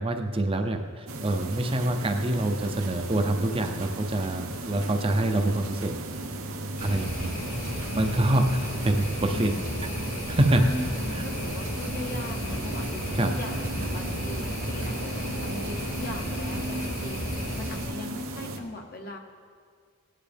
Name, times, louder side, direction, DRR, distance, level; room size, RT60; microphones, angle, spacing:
voice 1, 0.0-6.0 6.8-7.4 7.9-9.5 10.3-10.7 11.1-11.2 13.1-13.3, right 1 dB, 25° right, 5 dB, 0.6 m, -26 dB
sound 1, 1.1-18.6, right 2 dB, 85° right, 1.0 m, -36 dB
sound 2, 6.8-17.9, equal, 75° left, 2.7 m, -33 dB
voice 2, 9.3-9.8 10.5-12.9 13.2-17.2 17.6-19.2, left 1 dB, 45° left, 2 dB, 0.9 m, -39 dB
17.5 x 9.5 x 3.4 m, 2.1 s
head